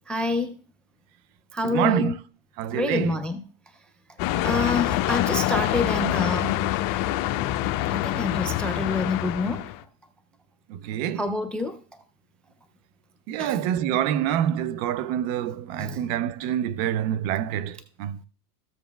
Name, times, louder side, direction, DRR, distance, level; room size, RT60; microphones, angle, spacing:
voice 1, 0.1-0.5 1.5-2.1 2.7-3.4 4.4-6.6 7.9-9.7 11.2-11.8 13.4-13.6 15.8-16.0, left 2 dB, 5° left, 0.3 m, -27 dB
voice 2, 1.6-2.1 2.6-3.2 10.7-11.2 13.3-18.2, right 10 dB, 50° right, 0.6 m, -26 dB
sound 1, 4.2-9.8, left 14 dB, 50° left, 0.7 m, -26 dB
14.0 x 7.3 x 2.3 m
supercardioid pair, 115°, 44 cm